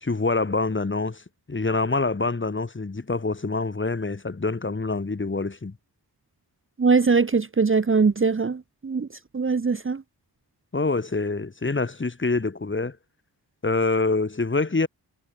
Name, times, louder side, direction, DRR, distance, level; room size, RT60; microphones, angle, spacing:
voice 1, 0.0-1.2 1.5-5.7 10.7-13.0 13.6-14.9, left 3 dB, 30° left, 1.5 m, -25 dB
voice 2, 6.8-9.1 9.3-10.0, right 4 dB, 30° right, 0.8 m, -21 dB
cardioid pair, 60°, 42 cm